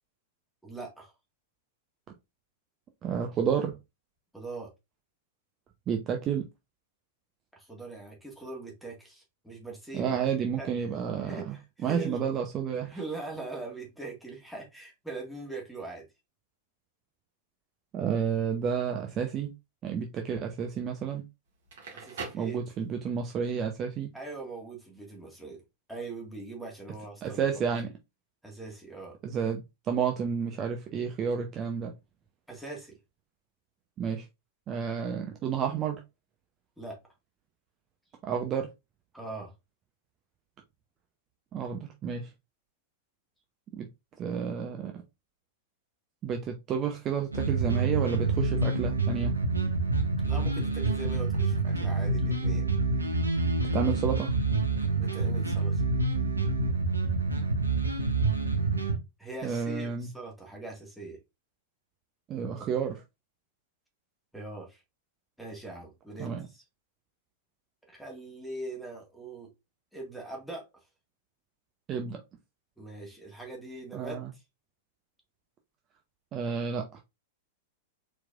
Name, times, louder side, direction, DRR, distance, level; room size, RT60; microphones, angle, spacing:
voice 1, 0.6-1.1 4.3-4.7 7.5-10.2 10.6-10.9 11.2-12.2 12.9-16.1 21.9-22.6 24.1-25.6 25.9-27.4 28.4-29.2 32.5-33.0 36.8-37.0 39.1-39.5 50.2-52.7 55.0-55.8 59.2-61.2 64.3-64.8 65.4-66.6 67.8-69.5 69.9-70.7 72.8-74.4, right 3 dB, ahead, 1.8 m, -41 dB
voice 2, 3.0-3.7 5.9-6.4 9.9-11.6 11.8-13.0 17.9-19.5 19.8-21.2 22.3-24.1 27.2-27.9 29.2-31.9 34.0-34.3 34.7-36.0 38.2-38.7 41.5-42.3 43.7-43.9 44.2-45.0 46.2-49.3 53.7-54.3 59.4-60.1 62.3-63.0 66.2-66.5 71.9-72.2 73.9-74.3 76.3-77.0, right 7 dB, 30° right, 0.7 m, -31 dB
Crackle, 21.5-23.2, right 4 dB, 60° right, 2.0 m, -42 dB
sound 1, 47.3-59.0, right 3 dB, 80° right, 0.9 m, -27 dB
4.4 x 4.1 x 2.5 m
figure-of-eight pair, 95°, 0 cm